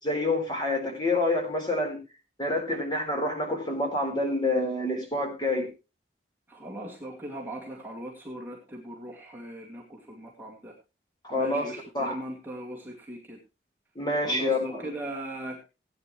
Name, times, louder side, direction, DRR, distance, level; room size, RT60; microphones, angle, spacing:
voice 1, 0.0-2.0 2.4-5.7 11.2-12.2 14.0-14.9, left 2 dB, 25° left, 2 dB, 4.0 m, -27 dB
voice 2, 6.5-10.7 11.3-13.4 14.2-15.6, right 1 dB, 10° right, -2 dB, 2.2 m, -39 dB
18.0 x 9.4 x 3.1 m, 0.29 s
head